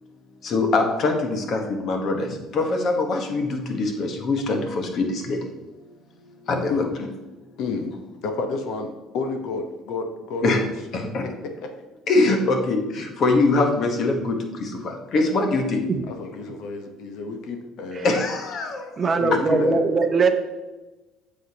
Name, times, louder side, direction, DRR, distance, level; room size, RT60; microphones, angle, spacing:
voice 1, 0.4-2.3 2.5-5.4 6.5-6.8 10.4-10.6 10.9-11.2 12.1-14.4 15.1-15.8 18.0-18.8, left 3 dB, 50° left, 4 dB, 1.3 m, -22 dB
voice 2, 7.6-7.9 8.2-10.7 11.2-11.7 16.1-18.2 19.2-19.8, left 4 dB, 65° left, 6 dB, 1.0 m, -30 dB
voice 3, 19.0-20.3, right 4 dB, 30° right, 7 dB, 0.7 m, -21 dB
8.9 x 6.5 x 2.9 m, 1.1 s
cardioid pair, 120°, 0 cm